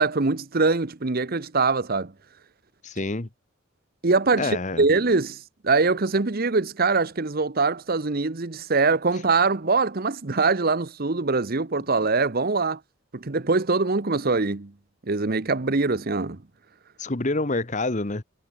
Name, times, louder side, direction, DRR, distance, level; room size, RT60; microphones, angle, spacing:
voice 1, 0.0-2.1 4.0-4.5 4.8-12.8 13.1-14.7 15.1-16.4, right 3 dB, 45° right, 0.9 m, -23 dB
voice 2, 2.8-3.3 4.4-4.8 17.0-18.2, left 2 dB, 35° left, 1.2 m, -27 dB
head